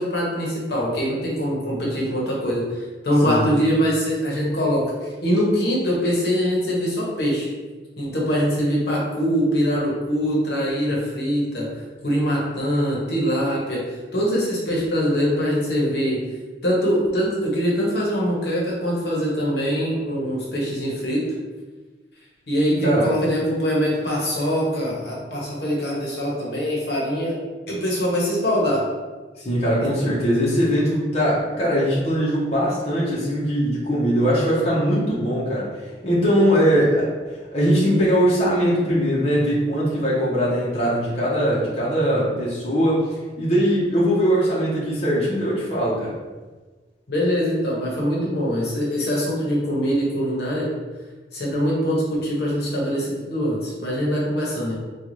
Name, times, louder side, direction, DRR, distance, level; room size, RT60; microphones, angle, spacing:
voice 1, 0.0-7.5 8.0-11.7 12.0-13.8 14.1-16.2 16.6-21.3 22.5-27.4 27.7-28.9 29.8-29.9 47.1-50.7 51.3-54.7, equal, 65° left, -4 dB, 0.9 m, -23 dB
voice 2, 29.4-35.7 36.0-37.1 37.5-43.0 43.4-46.1, equal, 35° left, -8 dB, 0.8 m, -21 dB
3.8 x 2.3 x 3.1 m, 1.3 s
head